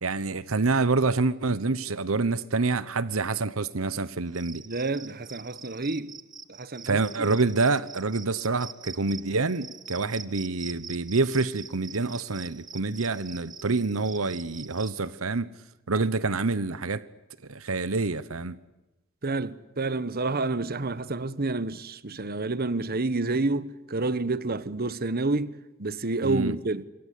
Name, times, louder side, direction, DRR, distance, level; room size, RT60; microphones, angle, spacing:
voice 1, 0.0-4.6 6.8-15.5 15.9-17.0 17.5-18.6 26.2-26.6, right 3 dB, 75° right, 1.0 m, -27 dB
Cricket, 4.3-14.9, right 5 dB, 20° right, 1.6 m, -44 dB
voice 2, 4.6-6.1 6.5-7.3 19.2-25.5 25.8-26.8, right 3 dB, 45° right, 1.2 m, -29 dB
27.5 x 24.5 x 8.4 m
head